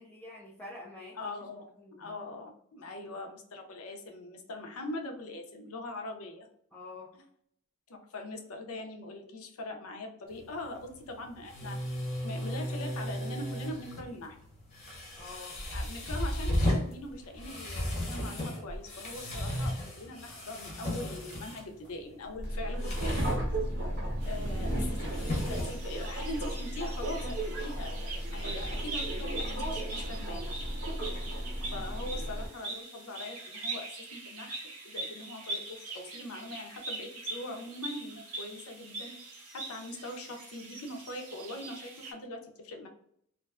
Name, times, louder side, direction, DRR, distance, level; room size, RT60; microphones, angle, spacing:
voice 1, 0.0-1.2 1.8-2.2 2.9-3.1 6.7-7.1 15.2-15.6 19.3-19.5 24.1-24.4 31.0-31.7, left 2 dB, 5° left, -6 dB, 0.4 m, -48 dB
voice 2, 1.2-1.7 2.0-6.5 7.9-11.8 12.2-14.4 15.7-23.3 24.2-30.5 31.7-34.6 34.8-39.2 39.5-42.9, left 2 dB, 75° left, 3 dB, 0.6 m, -42 dB
sound 1, 10.3-26.5, equal, 30° left, 0.7 m, -36 dB
Subway metro underground, 22.4-32.5, right 1 dB, 50° right, 0.7 m, -34 dB
sound 2, 24.2-42.1, right 2 dB, 85° right, 0.7 m, -43 dB
2.5 x 2.3 x 2.3 m, 0.69 s
head